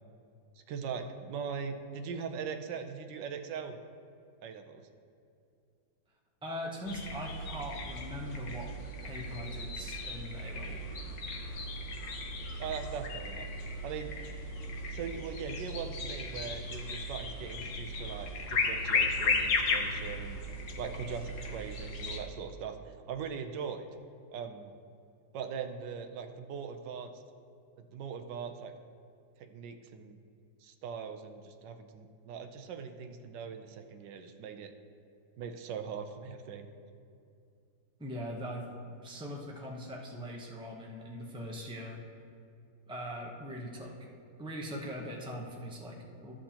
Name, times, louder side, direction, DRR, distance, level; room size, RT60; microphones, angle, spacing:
voice 1, 0.7-3.8 4.4-4.8 12.6-13.5 13.8-14.1 14.9-20.4 20.8-23.9 24.3-24.7 25.3-27.2 27.8-28.7 29.4-30.2 30.6-34.7 35.4-36.7, right 6 dB, 80° right, 7 dB, 1.3 m, -40 dB
voice 2, 6.4-8.7 9.0-10.8 38.0-42.0 42.9-43.9 44.4-46.3, equal, 10° right, -2 dB, 0.3 m, -41 dB
sound 1, 6.9-22.2, left 3 dB, 55° left, 0.9 m, -35 dB
12.5 x 7.4 x 2.9 m, 2.5 s
omnidirectional pair, 1.9 m